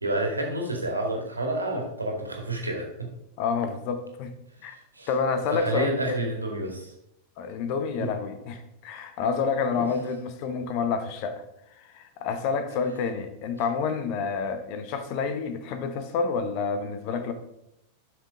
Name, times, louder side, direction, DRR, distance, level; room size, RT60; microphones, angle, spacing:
voice 1, 0.0-3.1 4.9-5.1 5.5-6.9 8.0-8.1 9.7-9.8, right 1 dB, 80° right, 1 dB, 2.1 m, -29 dB
voice 2, 3.4-4.3 4.6-4.8 5.1-6.3 7.4-11.4 11.8-17.3, left 5 dB, 45° left, 9 dB, 1.0 m, -29 dB
11.5 x 6.1 x 3.7 m, 0.82 s
figure-of-eight pair, 90°, 0 cm